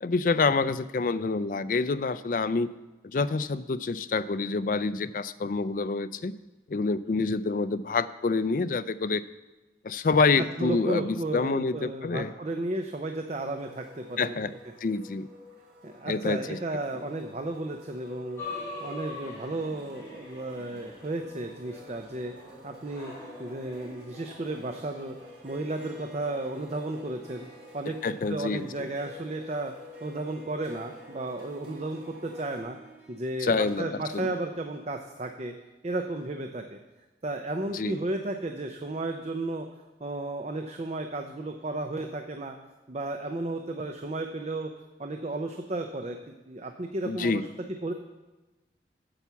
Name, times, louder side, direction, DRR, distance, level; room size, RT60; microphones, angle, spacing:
voice 1, 0.0-2.7 3.0-6.3 6.7-9.2 9.8-12.3 14.2-14.5 14.8-15.3 16.1-16.6 28.0-28.9 33.4-34.3 37.7-38.0 47.1-47.4, left 4 dB, 50° left, 13 dB, 0.4 m, -27 dB
voice 2, 10.4-14.5 15.8-18.4 18.8-22.3 22.6-23.1 23.4-25.2 25.4-27.5 27.7-28.0 28.3-29.7 30.0-32.8 33.1-35.5 35.8-36.8 37.2-39.7 40.0-42.6 42.9-44.7 45.0-46.2 46.5-47.5 47.8-47.9, right 2 dB, 40° right, 5 dB, 0.6 m, -33 dB
sound 1, 13.5-32.6, left 3 dB, 65° right, 3.3 m, -50 dB
sound 2, 18.4-25.4, left 2 dB, 15° left, 4.3 m, -44 dB
Harp, 25.2-33.2, equal, 90° right, 2.2 m, -53 dB
9.0 x 7.2 x 7.0 m, 1.1 s
head